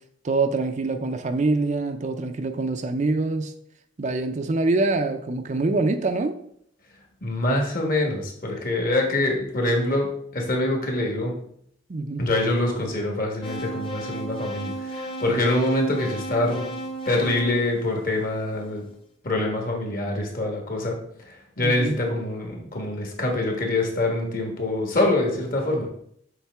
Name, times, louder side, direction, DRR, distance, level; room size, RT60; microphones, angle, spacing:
voice 1, 0.2-3.5 4.0-6.4 11.9-12.2 21.6-22.0, right 3 dB, 40° right, 0.5 m, -25 dB
voice 2, 7.2-10.1 10.3-11.3 12.2-16.7 17.1-18.8 19.2-21.0 21.3-25.9, left 1 dB, 50° left, 1.3 m, -25 dB
sound 1, 13.4-18.6, right 1 dB, 30° left, 0.9 m, -34 dB
7.2 x 4.0 x 3.5 m
head